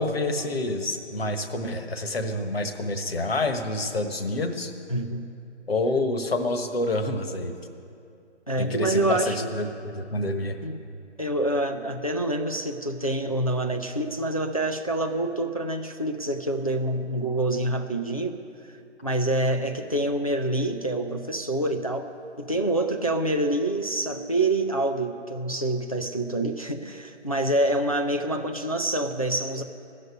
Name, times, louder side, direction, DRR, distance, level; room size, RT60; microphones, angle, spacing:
voice 1, 0.0-4.7 5.7-7.5 8.6-10.6, left 2 dB, 55° left, 6 dB, 1.3 m, -27 dB
voice 2, 4.9-5.3 8.5-9.5 10.6-10.8 11.2-18.4 19.0-22.1 22.4-29.6, right 1 dB, 30° left, 4 dB, 0.5 m, -26 dB
15.5 x 6.6 x 9.6 m, 2.5 s
hypercardioid pair, 175°, 36 cm